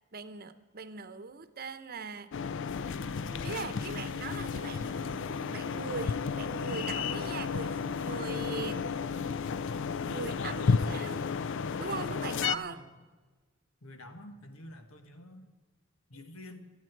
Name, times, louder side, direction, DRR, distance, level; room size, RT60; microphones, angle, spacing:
voice 1, 0.1-2.3 3.4-9.0 10.1-11.3 11.8-12.8, right 4 dB, 45° right, 12 dB, 0.9 m, -40 dB
sound 1, 2.3-12.6, left 5 dB, 60° left, 0.4 m, -32 dB
sound 2, 2.7-10.8, equal, 15° left, 3.8 m, -49 dB
voice 2, 10.3-11.5 12.2-12.9 13.8-15.5 16.1-16.7, left 1 dB, 90° left, 7 dB, 1.7 m, -49 dB
26.5 x 8.9 x 4.6 m, 1.3 s
head